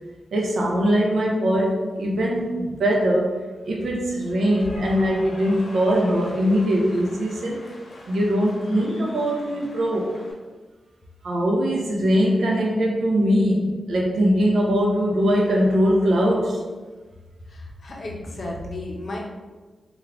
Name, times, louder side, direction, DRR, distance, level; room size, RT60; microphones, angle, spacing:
voice 1, 0.3-3.4 3.6-7.7 8.1-10.1 11.2-16.6, equal, 70° right, -2 dB, 0.5 m, -21 dB
Cheering / Applause, 4.0-10.3, left 1 dB, 80° left, 0.8 m, -43 dB
voice 2, 17.5-19.2, left 2 dB, 45° left, -2 dB, 0.6 m, -33 dB
3.4 x 2.3 x 3.4 m, 1.3 s
wide cardioid pair, 170°, 0 cm